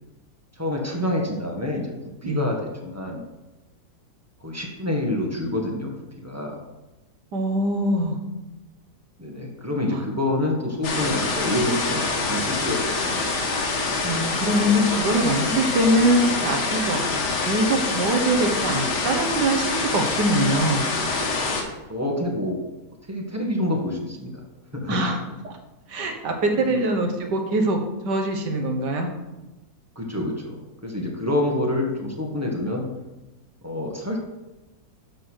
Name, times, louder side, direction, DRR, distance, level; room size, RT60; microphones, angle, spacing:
voice 1, 0.6-1.9 2.2-3.2 4.4-5.9 6.2-6.6 9.2-13.2 21.9-22.6 23.1-24.4 24.7-25.0 26.6-26.8 30.0-32.9 33.6-34.2, left 1 dB, 10° right, 0 dB, 1.7 m, -27 dB
voice 2, 7.3-8.2 9.9-10.0 14.0-17.0 17.5-20.9 24.9-25.2 25.4-25.5 25.9-27.8 28.1-29.1, right 1 dB, 85° right, 4 dB, 2.0 m, -23 dB
sound 1, 10.8-21.6, left 3 dB, 80° left, 2.0 m, -25 dB
12.5 x 4.2 x 6.4 m, 1.0 s
omnidirectional pair, 1.8 m